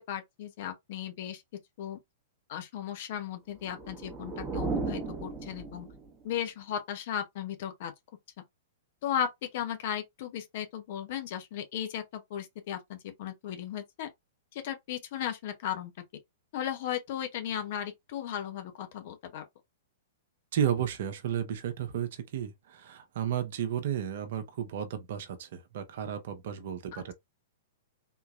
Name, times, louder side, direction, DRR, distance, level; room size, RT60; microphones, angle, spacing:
voice 1, 0.1-1.4 1.8-2.0 2.5-5.9 6.2-7.9 9.0-14.1 14.5-15.9 16.5-19.4 26.9-27.1, left 9 dB, 50° left, 0.9 m, -36 dB
sound 1, 3.5-6.2, right 4 dB, 15° right, 0.9 m, -35 dB
voice 2, 20.5-27.1, right 9 dB, 55° right, 0.7 m, -33 dB
3.7 x 2.8 x 2.4 m
figure-of-eight pair, 105°, 0 cm